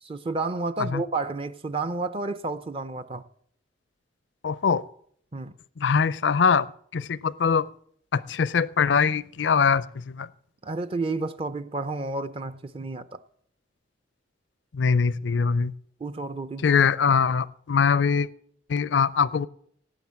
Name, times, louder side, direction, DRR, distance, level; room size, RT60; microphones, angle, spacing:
voice 1, 0.0-3.2 5.3-5.5 10.6-13.2 16.0-16.7, right 3 dB, 30° right, 0.5 m, -31 dB
voice 2, 4.4-4.8 5.8-6.7 6.9-7.6 8.1-10.3 14.7-15.7 16.6-18.3 18.7-19.5, left 6 dB, 65° left, 0.5 m, -22 dB
17.5 x 7.6 x 7.5 m
head